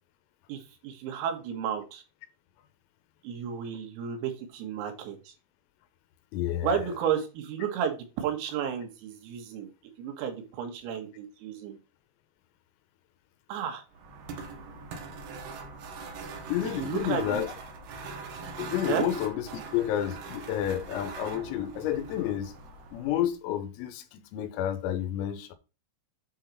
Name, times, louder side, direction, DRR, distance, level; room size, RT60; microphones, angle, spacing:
voice 1, 0.5-2.0 3.2-5.3 6.6-9.7 10.0-11.8 13.5-13.8 16.8-17.4 18.9-19.1, right 8 dB, 90° right, 4.3 m, -32 dB
voice 2, 6.3-6.8 16.5-17.5 18.6-22.5 22.9-25.5, left 11 dB, 90° left, 3.6 m, -30 dB
sound 1, 13.9-23.3, right 4 dB, 70° right, 2.6 m, -42 dB
9.0 x 4.0 x 4.6 m
omnidirectional pair, 6.0 m